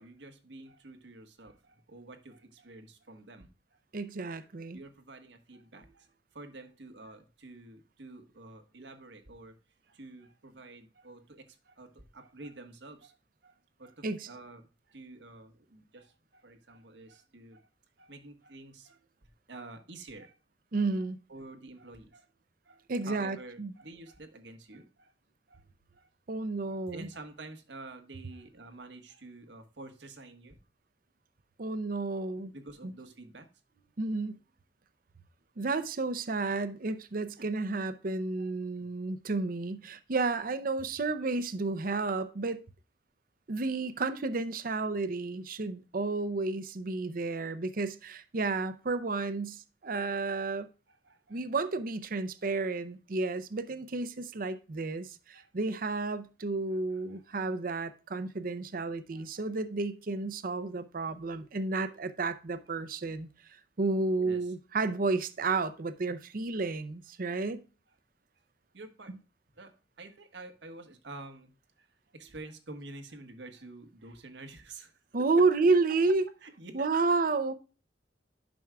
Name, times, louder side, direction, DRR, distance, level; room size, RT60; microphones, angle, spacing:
voice 1, 0.0-3.8 4.7-9.6 9.8-13.2 13.4-17.7 18.0-20.3 20.8-20.9 21.3-22.3 22.6-25.1 25.5-25.6 25.9-26.1 26.9-30.6 32.5-33.5 37.4-37.5 38.4-38.5 50.9-51.4 55.3-55.5 56.7-57.2 59.1-59.5 64.2-64.5 68.7-69.1 69.5-71.9 72.1-74.9 76.4-76.9, right 2 dB, 85° right, 1.4 m, -49 dB
voice 2, 3.9-4.8 14.0-14.3 20.7-21.2 22.9-23.7 26.3-27.1 31.6-32.5 32.8-32.9 34.0-34.4 35.6-42.6 43.5-50.7 51.3-63.3 63.8-67.6 75.1-76.2 76.7-77.5, right 3 dB, 55° right, 0.6 m, -31 dB
10.5 x 6.2 x 2.3 m
head